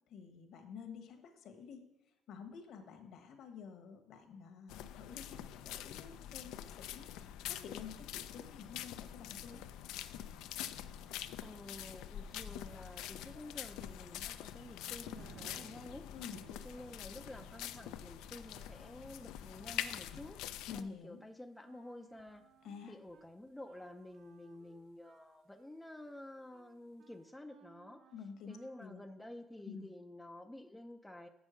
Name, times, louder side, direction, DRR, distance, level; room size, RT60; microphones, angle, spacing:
voice 1, 0.1-1.8 2.3-9.6 16.1-16.4 20.7-21.2 22.6-23.0 28.1-29.0 29.6-29.9, left 6 dB, 65° left, 6 dB, 1.3 m, -50 dB
sound 1, 4.7-20.8, left 11 dB, 85° left, 0.4 m, -45 dB
voice 2, 11.4-16.1 16.5-20.4 20.7-22.5 22.9-28.0 28.5-31.3, left 1 dB, 5° left, 5 dB, 0.5 m, -51 dB
sound 2, 15.2-25.3 26.8-27.0, right 7 dB, 80° right, 0.6 m, -62 dB
Wind instrument woodwind instrument, 21.6-23.3 23.6-29.0, right 7 dB, 60° right, 0.9 m, -66 dB
7.3 x 6.3 x 6.3 m, 0.91 s
cardioid pair, 130°, 0 cm